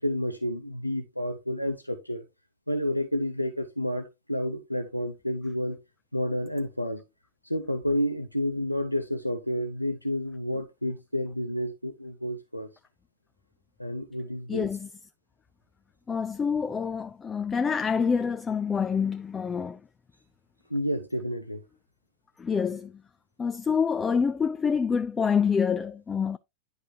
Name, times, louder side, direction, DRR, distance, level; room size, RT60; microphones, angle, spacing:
voice 1, 0.0-2.2 2.7-5.8 6.1-7.0 7.4-12.7 13.8-14.7 20.7-21.7, equal, 90° left, 0.7 m, -30 dB
voice 2, 14.5-14.9 16.1-19.8 22.4-22.9 23.4-26.4, left 6 dB, 15° left, 0.3 m, -26 dB
10.5 x 4.7 x 2.7 m
figure-of-eight pair, 90°, 0 cm